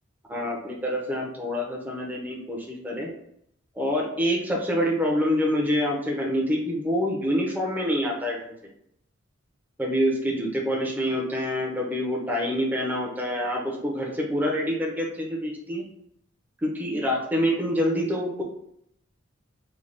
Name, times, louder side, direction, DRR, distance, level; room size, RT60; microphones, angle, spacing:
voice 1, 0.3-3.1 3.7-8.5 9.8-15.9 16.6-18.4, equal, 10° right, -1 dB, 0.7 m, -26 dB
3.3 x 2.3 x 3.8 m, 0.72 s
head